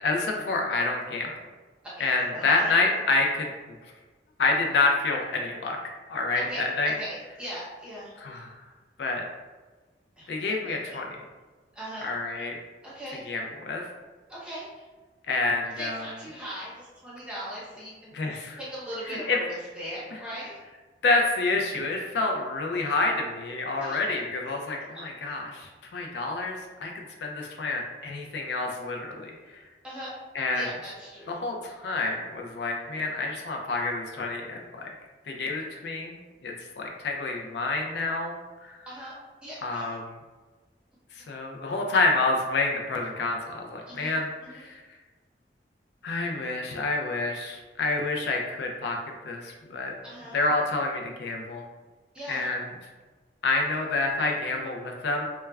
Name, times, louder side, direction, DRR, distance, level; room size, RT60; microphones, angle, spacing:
voice 1, 0.0-1.3 2.0-3.5 4.4-5.8 6.1-6.9 8.2-8.5 9.0-9.2 10.3-11.1 12.0-12.6 13.3-13.9 15.3-16.0 18.1-18.6 19.1-19.4 21.0-29.6 30.3-30.7 31.3-34.9 35.3-36.2 36.4-38.4 38.6-38.8 39.6-40.2 41.1-44.8 46.0-49.0 49.2-49.9 50.3-51.6 52.3-52.6 53.4-55.2, left 3 dB, 75° left, 1 dB, 0.4 m, -28 dB
voice 2, 1.8-3.0 6.4-8.1 10.2-11.0 11.7-12.1 12.8-13.3 14.3-14.9 15.8-18.1 18.6-20.6 23.8-24.0 29.8-30.1 30.5-31.4 38.8-39.1 39.4-40.0 43.9-44.6 50.0-50.4 52.1-52.5, equal, 5° right, -9 dB, 0.9 m, -39 dB
2.2 x 2.1 x 3.3 m, 1.3 s
head